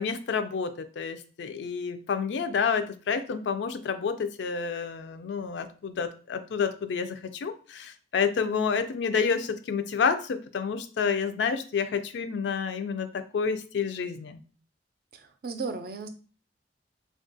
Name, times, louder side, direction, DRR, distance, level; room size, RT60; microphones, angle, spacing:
voice 1, 0.0-14.4, left 6 dB, 75° left, 9 dB, 0.4 m, -29 dB
voice 2, 15.1-16.1, right 4 dB, 55° right, 8 dB, 0.4 m, -35 dB
3.5 x 2.3 x 2.6 m, 0.38 s
head